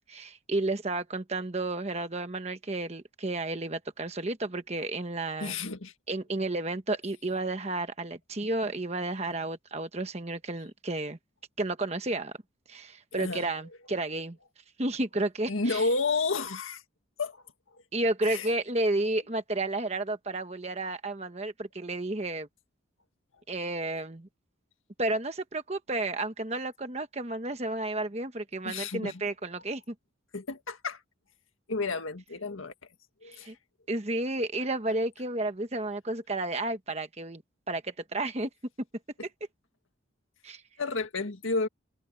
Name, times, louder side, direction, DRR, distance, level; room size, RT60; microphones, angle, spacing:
voice 1, 0.1-5.6 6.1-11.2 11.6-12.3 12.7-14.4 14.8-15.9 17.9-22.5 23.5-24.3 25.0-29.9 33.2-33.5 33.9-37.4 37.7-38.5 40.4-40.6, right 2 dB, 30° right, 1.2 m, -32 dB
voice 2, 5.4-5.9 13.1-13.5 15.5-16.8 17.2-17.8 18.2-18.5 28.6-29.2 30.3-31.0 31.7-32.7 33.2-33.5 40.8-41.7, left 3 dB, 85° left, 1.9 m, -31 dB
head